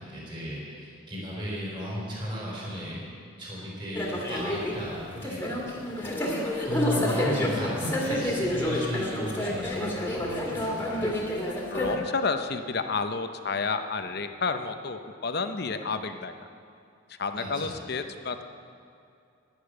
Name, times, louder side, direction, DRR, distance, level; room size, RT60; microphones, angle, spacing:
voice 1, 0.0-3.0 3.4-5.0 5.2-5.8 6.6-11.1 17.3-17.8, equal, 25° right, -5 dB, 4.0 m, -35 dB
sound 1, 3.9-11.9, left 1 dB, 10° left, 1.9 m, -29 dB
voice 2, 11.7-16.3 17.1-18.4, left 4 dB, 50° left, 8 dB, 0.7 m, -30 dB
11.5 x 10.5 x 8.1 m, 2.5 s
head